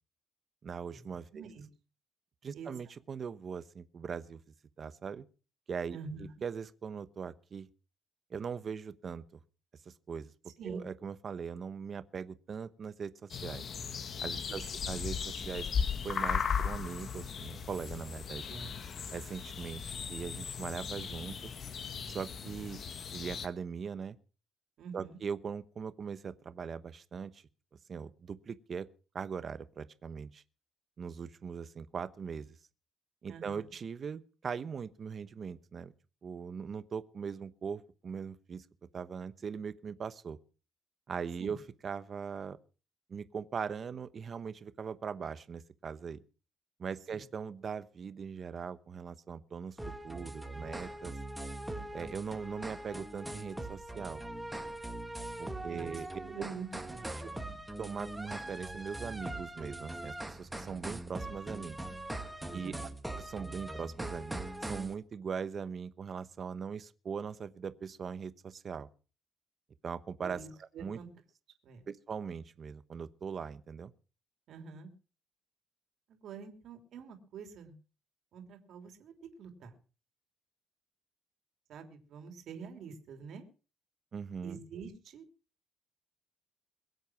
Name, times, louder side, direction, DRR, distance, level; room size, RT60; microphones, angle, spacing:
voice 1, 0.6-1.4 2.4-4.4 4.8-5.3 5.7-7.7 8.3-9.4 9.8-10.3 10.6-13.6 14.2-15.7 16.0-18.4 19.1-21.5 22.1-22.8 23.1-24.2 24.9-27.4 27.9-28.9 29.1-30.4 31.0-32.6 33.2-35.9 36.2-38.6 38.9-40.4 41.1-42.6 43.1-46.2 46.8-49.8 50.0-51.2 51.9-54.2 55.4-56.1 57.2-57.3 57.8-61.8 62.5-62.7 63.2-68.9 69.8-71.0 71.9-73.9 84.1-84.6, right 6 dB, 35° right, 1.0 m, -40 dB
voice 2, 1.3-1.7 2.5-2.7 5.9-6.3 10.6-10.8 14.5-14.7 18.5-18.7 24.8-25.2 33.3-33.7 41.4-41.6 47.1-47.3 55.7-57.1 62.4-62.9 70.2-71.1 71.6-71.9 74.5-74.9 76.1-77.7 78.3-79.1 79.4-79.8 81.7-83.5 84.4-85.2, right 5 dB, 60° right, 3.1 m, -46 dB
sound 1, 13.3-23.5, left 6 dB, 40° left, 1.3 m, -37 dB
sound 2, 49.8-64.9, right 1 dB, 5° right, 1.5 m, -41 dB
22.5 x 8.1 x 5.9 m
cardioid pair, 150°, 0 cm